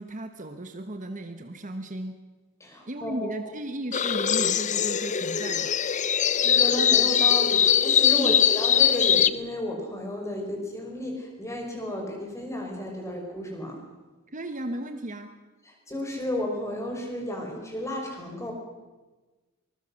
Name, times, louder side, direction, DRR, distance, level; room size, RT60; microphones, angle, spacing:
voice 1, 0.0-2.2 2.9-5.7 8.1-8.4 14.3-15.3, right 1 dB, 35° right, 7 dB, 1.3 m, -35 dB
voice 2, 2.6-3.5 6.1-13.8 15.7-18.5, left 1 dB, 15° left, 1 dB, 5.6 m, -33 dB
sound 1, 3.9-9.3, left 9 dB, 35° left, 0.6 m, -21 dB
25.0 x 21.0 x 6.5 m, 1.2 s
head